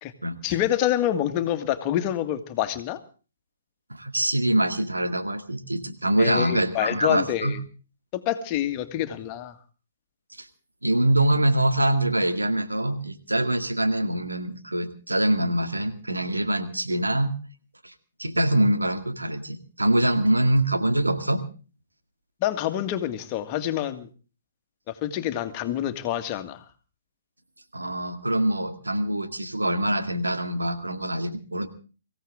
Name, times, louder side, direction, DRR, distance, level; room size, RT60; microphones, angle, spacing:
voice 1, 0.4-3.0 6.2-7.6 8.1-9.5 22.4-24.1 24.9-26.6, left 11 dB, 30° left, 8 dB, 1.8 m, -27 dB
voice 2, 3.9-7.6 10.4-10.5 10.8-17.4 17.8-17.9 18.2-21.4 27.7-31.7, right 1 dB, 90° right, 7 dB, 2.2 m, -24 dB
24.0 x 16.0 x 3.6 m, 0.36 s
figure-of-eight pair, 130°, 0 cm